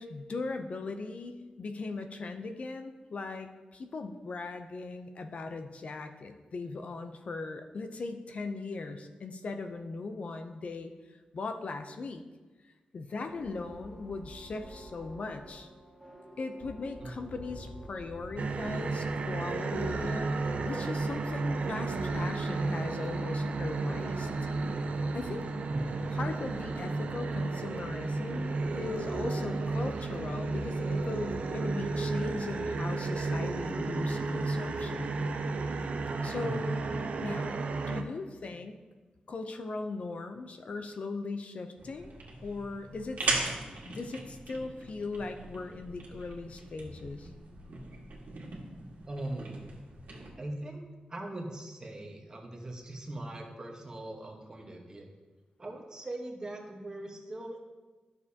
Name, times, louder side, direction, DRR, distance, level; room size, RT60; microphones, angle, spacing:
voice 1, 0.0-12.2 12.9-15.7 16.4-24.3 25.1-25.5 26.1-35.2 36.2-36.8 37.2-37.5 37.9-38.8 39.3-42.1 42.4-43.3 43.8-47.3, left 3 dB, 50° left, 7 dB, 0.5 m, -39 dB
sound 1, 13.1-22.2, equal, ahead, 1.7 m, -49 dB
voice 2, 17.0-17.3 25.7-26.2 36.4-36.6 49.1-49.8 50.4-50.8 51.1-55.1 55.6-57.6, right 1 dB, 25° right, 1 dB, 1.2 m, -41 dB
sound 2, 18.4-38.0, right 3 dB, 60° right, 0.6 m, -32 dB
sound 3, 41.8-50.3, right 3 dB, 80° right, 1.7 m, -39 dB
12.0 x 6.6 x 2.8 m, 1.2 s
wide cardioid pair, 125°, 3 cm